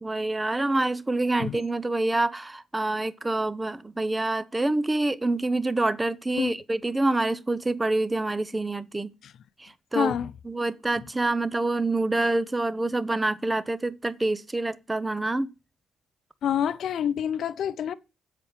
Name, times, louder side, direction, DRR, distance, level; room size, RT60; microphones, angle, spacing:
voice 1, 0.0-9.1 9.6-10.1 10.5-15.5, right 2 dB, 15° right, 0.8 m, -26 dB
voice 2, 9.9-10.3 16.4-17.9, left 9 dB, 65° left, 0.7 m, -27 dB
8.2 x 5.9 x 7.3 m
cardioid pair, 90°, 0 cm